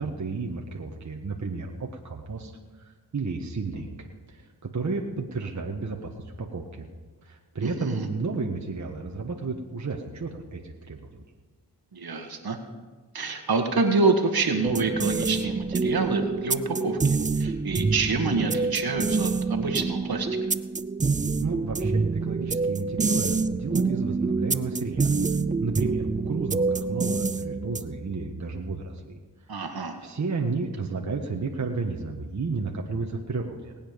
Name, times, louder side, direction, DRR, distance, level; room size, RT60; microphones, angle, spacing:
voice 1, 0.0-2.5 2.8-6.1 6.4-6.9 7.2-11.2 21.4-25.1 25.6-29.2 29.5-29.6 30.0-33.7, right 4 dB, 45° right, 1 dB, 1.5 m, -32 dB
voice 2, 7.6-8.1 11.9-12.6 13.1-20.3 29.5-30.0, right 3 dB, 60° right, 5 dB, 1.8 m, -27 dB
sound 1, 14.6-28.1, right 4 dB, 20° right, 0.5 m, -27 dB
19.5 x 8.8 x 5.2 m, 1.3 s
cardioid pair, 55°, 41 cm